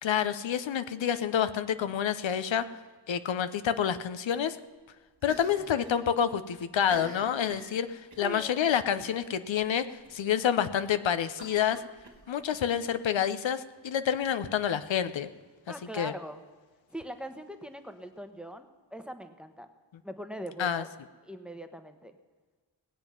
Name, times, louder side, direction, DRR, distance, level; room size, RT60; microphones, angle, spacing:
voice 1, 0.0-2.6 3.1-4.6 5.2-11.8 12.3-15.3 15.9-16.1 20.6-20.8, left 8 dB, 85° left, 11 dB, 0.7 m, -28 dB
Cough, 5.2-6.0 6.3-6.4 6.8-8.3 9.0-9.3 9.6-9.7 10.0-10.1 11.4-12.6, right 1 dB, 40° right, 2.0 m, -47 dB
voice 2, 8.2-8.6 15.7-16.4 16.9-19.7 20.0-20.9 21.2-22.2, equal, ahead, 8 dB, 1.0 m, -41 dB
19.0 x 7.9 x 5.8 m, 1.4 s
wide cardioid pair, 60°, 44 cm